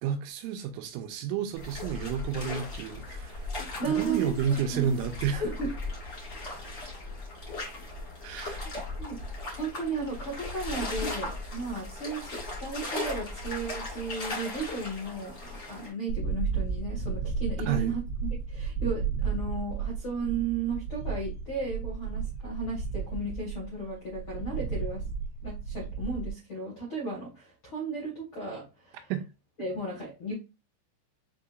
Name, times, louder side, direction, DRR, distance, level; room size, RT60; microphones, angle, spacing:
voice 1, 0.0-3.5 3.8-5.4 8.2-8.6 17.7-18.0 29.1-29.2, right 8 dB, 90° right, 3.1 m, -31 dB
sound 1, 1.5-15.9, left 2 dB, 50° left, 1.0 m, -38 dB
voice 2, 3.8-5.0 5.3-5.7 6.4-6.8 8.6-8.7 9.0-9.2 9.6-18.0 18.5-25.0 25.4-29.1 29.6-30.3, right 3 dB, 90° left, 1.1 m, -35 dB
sound 2, 16.1-26.3, right 6 dB, 70° right, 1.5 m, -33 dB
7.1 x 2.8 x 2.5 m
omnidirectional pair, 5.4 m